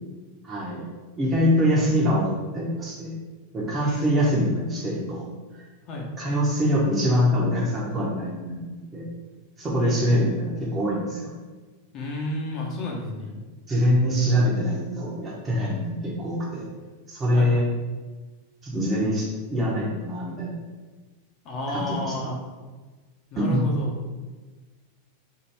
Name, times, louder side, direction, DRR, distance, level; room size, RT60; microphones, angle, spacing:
voice 1, 0.4-0.8 1.2-3.2 3.5-5.2 5.5-5.6 6.2-9.1 9.6-11.3 13.7-16.6 17.1-17.6 18.6-20.6 21.7-22.1 23.3-23.6, equal, 20° right, -5 dB, 0.9 m, -24 dB
voice 2, 3.8-4.1 5.9-6.1 9.8-10.1 11.9-13.3 17.3-17.6 21.4-22.4 23.3-23.9, left 1 dB, 35° left, -1 dB, 0.9 m, -31 dB
3.0 x 2.8 x 4.5 m, 1.3 s
figure-of-eight pair, 90°, 0 cm